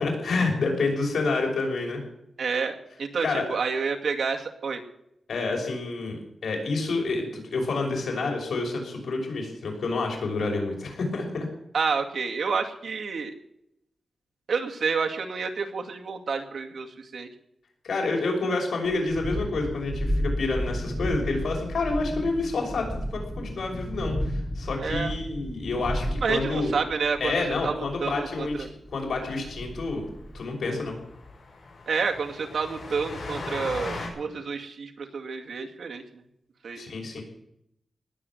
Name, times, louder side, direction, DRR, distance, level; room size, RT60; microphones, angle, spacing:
voice 1, 0.0-2.0 3.2-3.5 5.3-11.5 17.8-26.7 27.2-30.1 30.3-31.0 36.8-37.2, left 3 dB, 80° left, 1 dB, 5.9 m, -28 dB
voice 2, 2.4-4.8 11.7-13.3 14.5-17.3 24.8-25.1 26.2-28.7 31.9-36.0 36.6-36.8, right 5 dB, 75° right, 3 dB, 2.2 m, -29 dB
Thunderstorm, 18.8-30.4, equal, 5° right, 5.4 m, -33 dB
Train, 29.5-29.6 29.9-30.0 30.3-30.4 30.7-34.1, left 3 dB, 65° left, 6.4 m, -38 dB
19.0 x 8.0 x 9.4 m, 0.78 s
wide cardioid pair, 130°, 0 cm